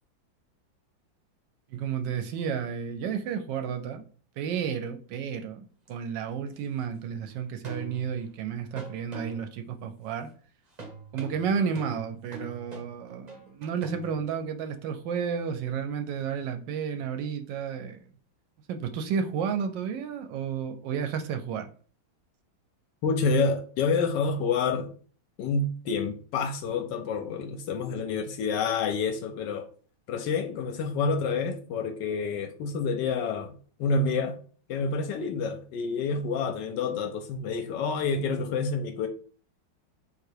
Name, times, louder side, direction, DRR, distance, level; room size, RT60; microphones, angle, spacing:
voice 1, 1.7-4.0 4.4-10.3 11.1-18.1 18.7-21.7, right 7 dB, 75° right, 1.2 m, -32 dB
sound 1, 5.9-6.0 7.6-8.4 8.8-9.7 10.8-14.1, right 3 dB, 40° right, 0.6 m, -42 dB
voice 2, 23.0-24.9 25.4-29.7 30.1-34.4 34.7-39.1, left 4 dB, 75° left, 1.1 m, -28 dB
3.9 x 2.8 x 4.5 m
omnidirectional pair, 2.1 m